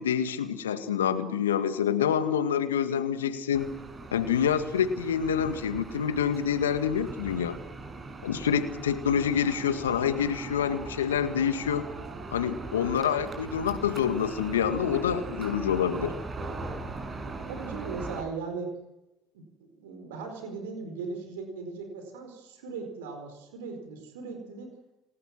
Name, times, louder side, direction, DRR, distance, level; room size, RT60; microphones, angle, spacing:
voice 1, 0.0-3.7 4.1-7.6 8.2-11.9 12.3-16.1, left 8 dB, 85° left, 9 dB, 1.8 m, -27 dB
sound 1, 3.5-18.2, right 3 dB, 35° right, 7.0 m, -40 dB
voice 2, 17.5-18.7 19.3-24.7, right 4 dB, 75° right, 5 dB, 4.6 m, -38 dB
28.5 x 19.0 x 6.2 m, 0.92 s
hypercardioid pair, 60°, 0 cm